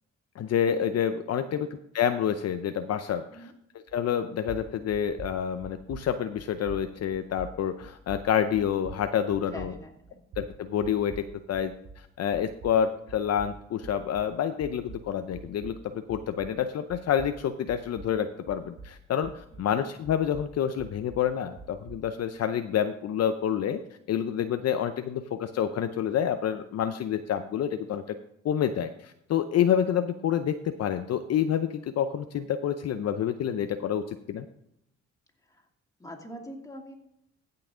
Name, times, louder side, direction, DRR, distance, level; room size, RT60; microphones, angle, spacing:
voice 1, 0.4-3.5 3.9-9.7 10.4-15.8 16.1-23.8 24.1-28.2 28.4-34.4, left 9 dB, 55° left, 8 dB, 0.6 m, -28 dB
sound 1, 3.9-4.2 4.4-12.1 12.3-16.6 16.9-19.7 20.0-22.1, right 4 dB, 75° right, 4.0 m, -45 dB
voice 2, 9.5-10.2 35.5-35.6 36.0-37.0, equal, 10° left, 1 dB, 2.4 m, -43 dB
15.5 x 5.8 x 3.7 m, 0.77 s
cardioid pair, 90°, 30 cm